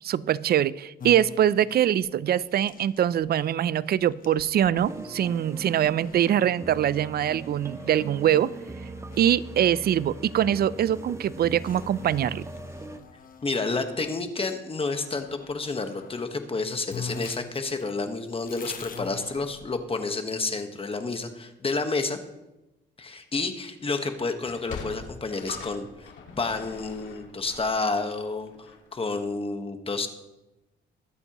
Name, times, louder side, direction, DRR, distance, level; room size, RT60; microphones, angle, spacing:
voice 1, 0.0-8.5 9.2-12.5, right 10 dB, 50° right, 19 dB, 0.4 m, -23 dB
sound 1, 1.0-14.2 14.8-16.3 16.6-16.7 16.9-20.0, left 5 dB, 45° left, 1.0 m, -45 dB
sound 2, 4.8-13.0, right 1 dB, 15° right, 0.8 m, -41 dB
voice 2, 13.4-22.2 23.0-26.1 26.4-30.1, left 3 dB, 30° left, 7 dB, 1.3 m, -30 dB
Sliding door, 24.3-29.0, left 5 dB, 70° left, 2.1 m, -43 dB
22.5 x 7.9 x 3.0 m, 0.98 s
cardioid pair, 90°, 20 cm